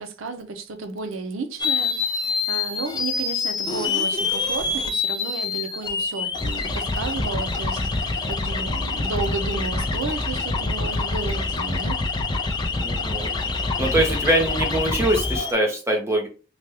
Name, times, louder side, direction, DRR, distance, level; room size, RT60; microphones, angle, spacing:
voice 1, 0.0-12.0, right 4 dB, 85° right, 0.5 m, -33 dB
sound 1, 1.6-15.5, left 3 dB, 20° left, 0.4 m, -26 dB
voice 2, 12.8-13.3 13.8-16.3, right 1 dB, 15° right, 0.7 m, -23 dB
3.3 x 2.2 x 2.8 m
head